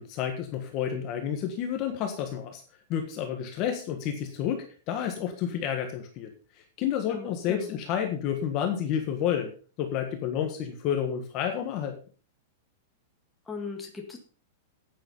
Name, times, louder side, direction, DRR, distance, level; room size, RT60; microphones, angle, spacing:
voice 1, 0.0-2.6 2.9-6.3 6.8-9.5 9.8-12.0, left 9 dB, 30° left, 4 dB, 1.5 m, -30 dB
voice 2, 7.1-7.7 13.5-14.2, left 4 dB, 5° left, 0 dB, 1.9 m, -38 dB
10.0 x 9.2 x 5.5 m, 0.39 s
supercardioid pair, 180°, 0 cm